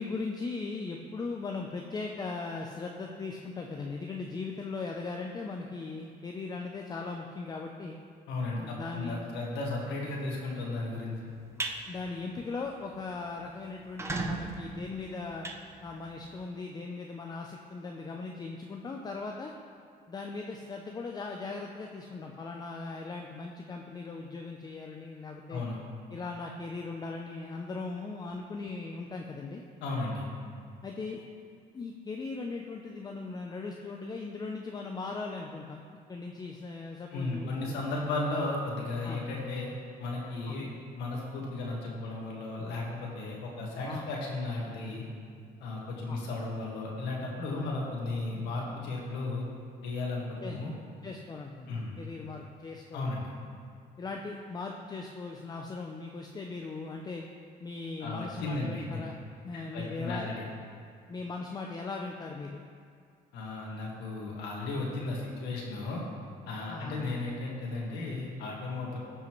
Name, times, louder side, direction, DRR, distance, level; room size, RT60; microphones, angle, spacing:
voice 1, 0.0-8.0 8.6-9.2 11.9-15.5 15.8-19.5 20.1-25.6 26.1-29.6 30.8-31.2 31.7-35.8 36.1-37.8 39.0-39.2 40.5-40.6 43.9-44.1 46.1-46.2 47.5-47.7 50.4-50.6 51.0-53.3 54.0-57.2 57.6-59.2 59.4-60.3 61.1-62.6 66.7-67.0, left 3 dB, 25° left, 1 dB, 0.5 m, -39 dB
voice 2, 8.3-11.2 25.5-25.8 29.8-30.3 37.1-39.7 40.0-40.7 41.0-45.1 45.6-49.5 49.8-50.7 51.7-52.0 52.9-53.3 58.0-58.8 59.5-60.3 63.3-66.0 66.5-69.0, left 2 dB, 85° left, -3 dB, 1.8 m, -35 dB
sound 1, 11.3-11.8 12.2-12.5 12.8-12.9 13.1-13.2 13.8-16.3, right 2 dB, 15° right, 0.7 m, -36 dB
15.0 x 5.6 x 3.1 m, 2.3 s
cardioid pair, 110°, 17 cm